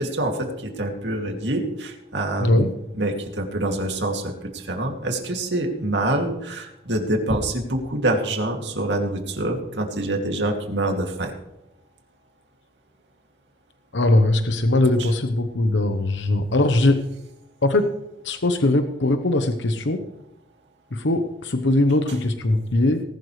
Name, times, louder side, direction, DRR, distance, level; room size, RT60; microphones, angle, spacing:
voice 1, 0.0-11.3 15.0-15.1, right 1 dB, 80° right, 3 dB, 2.6 m, -26 dB
voice 2, 2.4-2.7 13.9-17.0 17.6-17.9 18.2-20.0 20.9-23.0, left 2 dB, 90° left, 7 dB, 1.0 m, -20 dB
19.0 x 12.0 x 3.3 m, 0.88 s
head